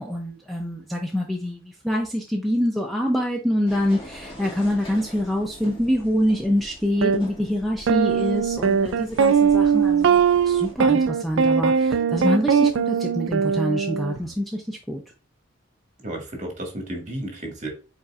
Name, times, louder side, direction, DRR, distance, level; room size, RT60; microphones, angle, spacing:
voice 1, 0.0-15.0, equal, ahead, 0 dB, 0.5 m, -25 dB
sound 1, 3.6-10.7, equal, 25° left, 1.8 m, -43 dB
sound 2, 7.0-7.2 7.9-14.2, right 6 dB, 65° right, 0.4 m, -20 dB
voice 2, 16.0-17.7, right 1 dB, 35° right, 2 dB, 1.5 m, -32 dB
5.3 x 4.1 x 2.4 m, 0.33 s
head